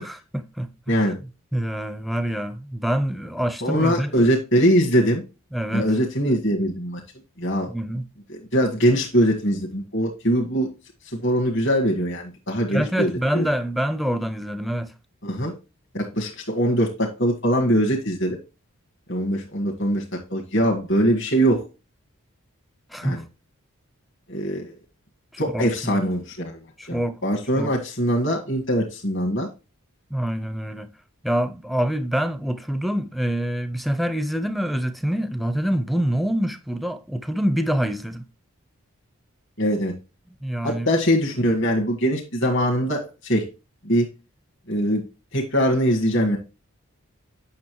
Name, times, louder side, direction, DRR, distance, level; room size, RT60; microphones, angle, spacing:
voice 1, 0.0-1.1 1.5-4.1 5.5-5.9 7.7-8.1 12.7-14.9 22.9-23.2 25.3-26.0 26.8-27.2 27.5-27.7 30.1-30.9 31.2-38.3 40.4-40.9, equal, ahead, 0.6 m, -26 dB
voice 2, 3.6-5.2 5.7-7.0 7.4-7.7 8.5-10.7 11.2-13.5 15.2-15.5 15.9-18.4 19.1-21.6 23.0-23.2 24.3-24.7 25.4-26.6 26.9-29.5 39.6-39.9 40.6-43.5 43.8-44.1 44.7-45.0 45.3-46.4, equal, 55° left, 1.6 m, -22 dB
8.6 x 6.3 x 3.1 m
head